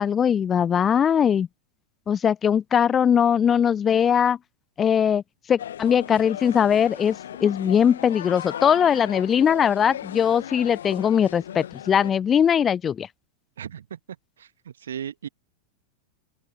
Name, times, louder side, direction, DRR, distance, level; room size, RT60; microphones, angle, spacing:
voice 1, 0.0-1.5 2.1-4.4 4.8-5.2 5.5-13.1, left 8 dB, 25° left, 0.5 m, -20 dB
sound 1, 5.6-12.1, left 10 dB, 65° left, 1.1 m, -37 dB
voice 2, 13.6-14.0 14.4-15.3, right 9 dB, 65° right, 1.6 m, -36 dB
open air
figure-of-eight pair, 90°, 0 cm